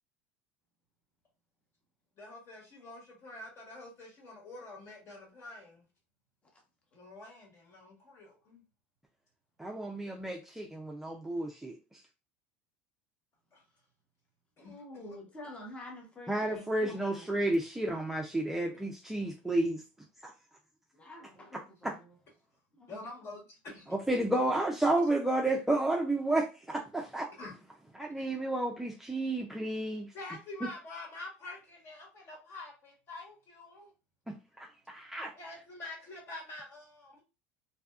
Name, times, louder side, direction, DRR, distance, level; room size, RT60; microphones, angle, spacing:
voice 1, 2.2-5.9 6.9-8.6 13.5-13.6 14.6-15.2 16.5-16.6 22.9-23.9 27.4-27.5 28.2-28.3 30.1-33.9 35.3-37.2, left 2 dB, 45° left, 1.4 m, -47 dB
voice 2, 9.6-11.7 16.3-19.8 20.2-20.3 21.8-21.9 24.1-27.3 28.0-30.1 34.3-35.3, right 2 dB, 5° right, 0.4 m, -31 dB
voice 3, 14.6-17.4 21.0-22.1 22.8-23.0, left 1 dB, 20° left, 0.9 m, -48 dB
2.7 x 2.2 x 2.4 m
supercardioid pair, 100°, 6 cm